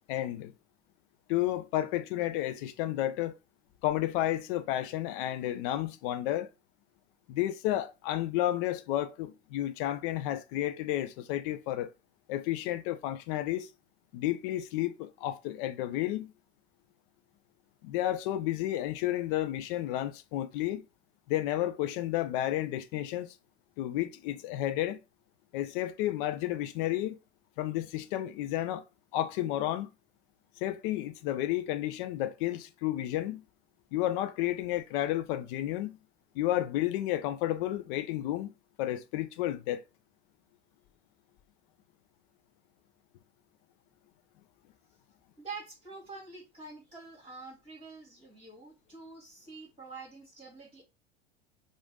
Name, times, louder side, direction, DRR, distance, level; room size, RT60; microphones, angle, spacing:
voice 1, 0.1-0.5 1.3-3.4 3.8-6.5 7.3-11.9 12.3-13.7 14.1-16.3 17.8-20.8 21.3-23.3 23.8-25.0 25.5-27.2 27.6-28.8 29.1-29.9 30.6-33.4 33.9-36.0 36.4-38.5 38.8-39.8, left 13 dB, 50° left, 0.6 m, -31 dB
voice 2, 45.4-50.8, right 4 dB, 15° right, 2.9 m, -46 dB
5.1 x 2.6 x 3.6 m
figure-of-eight pair, 85°, 34 cm